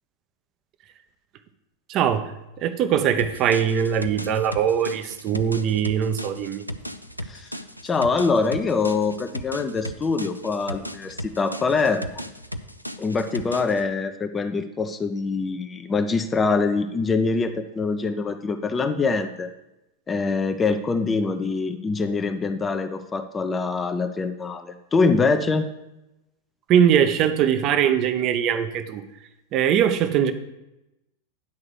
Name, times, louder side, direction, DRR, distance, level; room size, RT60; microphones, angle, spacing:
voice 1, 1.9-2.3 2.6-6.6 26.7-29.0 29.5-30.3, right 9 dB, 35° right, 10 dB, 0.7 m, -21 dB
sound 1, 3.2-13.8, equal, 90° left, 0.5 m, -36 dB
voice 2, 7.8-12.2 13.0-19.5 20.1-25.7, left 4 dB, 20° left, 8 dB, 0.5 m, -24 dB
9.5 x 4.8 x 6.3 m, 0.93 s
figure-of-eight pair, 90°, 0 cm